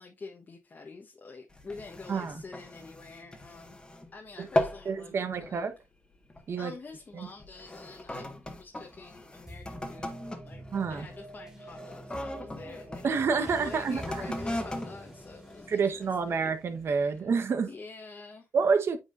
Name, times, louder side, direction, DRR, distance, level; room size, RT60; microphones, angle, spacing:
voice 1, 0.0-3.8 4.1-5.7 6.6-10.6 10.9-16.5 16.9-17.3 17.7-18.5, left 4 dB, 35° left, 1.3 m, -47 dB
sound 1, 1.5-4.1 4.4-4.9 5.3-5.6 6.3-6.5 7.3-13.1 13.9-16.2 16.8-16.9, left 1 dB, 15° left, 1.7 m, -37 dB
voice 2, 2.1-2.4 4.4-4.5 4.8-5.7 6.5-6.7 7.1-7.3 10.7-11.1 13.0-14.0 15.7-17.7 18.5-19.0, right 5 dB, 50° right, 1.2 m, -28 dB
sound 2, 9.5-17.3, right 1 dB, 10° right, 3.2 m, -46 dB
9.2 x 4.8 x 2.6 m
cardioid pair, 85°, 5 cm